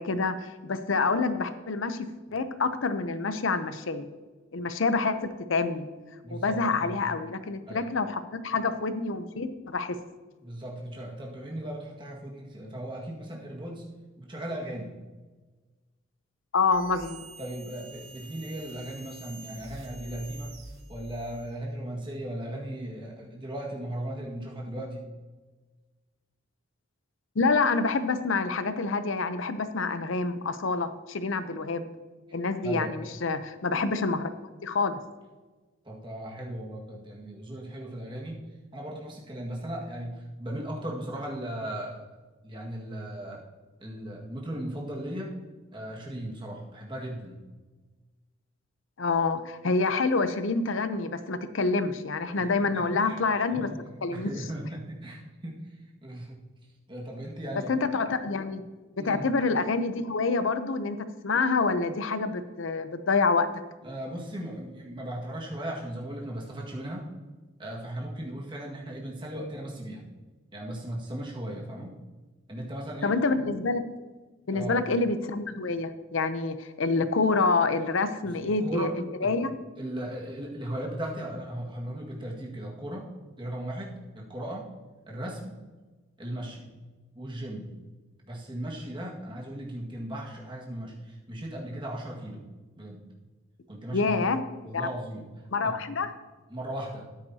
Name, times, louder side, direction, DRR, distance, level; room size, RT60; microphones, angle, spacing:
voice 1, 0.0-4.1 4.5-5.9 6.3-10.0 16.5-17.2 27.4-31.9 32.3-34.3 34.6-35.0 49.0-53.7 54.0-54.3 57.7-58.6 59.1-63.5 73.0-73.9 74.5-79.5 93.9-94.4 94.7-94.9 95.5-96.1, left 4 dB, 75° left, 11 dB, 0.7 m, -27 dB
voice 2, 6.2-7.0 7.7-7.9 10.4-13.9 14.2-14.9 17.4-20.5 20.9-25.1 32.6-33.0 35.8-38.4 38.7-42.0 42.4-43.4 43.8-45.4 45.7-47.4 52.3-53.1 53.5-53.7 54.1-55.7 56.0-56.4 56.9-57.7 59.0-59.3 63.8-67.1 67.6-70.1 70.5-72.0 72.5-73.2 74.5-74.8 78.4-79.3 79.8-83.1 83.4-84.7 85.1-85.6 86.2-86.7 87.1-87.7 88.2-92.4 92.8-93.1 93.7-94.2 94.6-95.2 95.6-95.7 96.5-97.0, right 1 dB, 25° right, -2 dB, 1.8 m, -37 dB
sound 1, 16.7-21.6, right 2 dB, 75° right, 1.9 m, -47 dB
13.0 x 9.7 x 2.8 m, 1.3 s
head